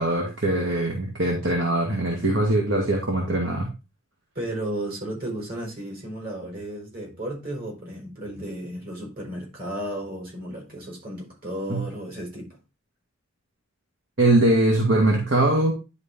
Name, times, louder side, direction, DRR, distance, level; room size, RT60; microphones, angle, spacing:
voice 1, 0.0-3.7 11.7-11.8 14.2-15.7, right 1 dB, 65° right, 1.9 m, -22 dB
voice 2, 4.3-12.6, right 1 dB, 50° right, 4.8 m, -34 dB
11.0 x 4.3 x 3.7 m
head